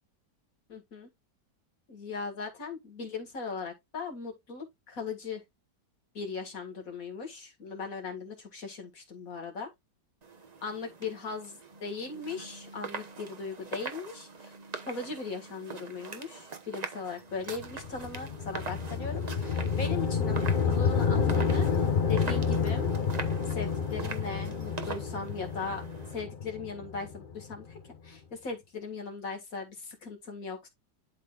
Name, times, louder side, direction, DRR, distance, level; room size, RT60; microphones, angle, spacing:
voice 1, 0.7-1.1 1.9-5.4 6.1-9.7 10.6-14.5 14.9-22.9 23.5-25.8 26.1-27.8 28.0-30.7, left 4 dB, 55° left, 2.4 m, -38 dB
sound 1, 10.2-26.2, right 4 dB, 30° right, 0.8 m, -43 dB
sound 2, 17.5-27.8, left 6 dB, 35° left, 1.0 m, -29 dB
12.0 x 4.0 x 2.5 m
omnidirectional pair, 1.9 m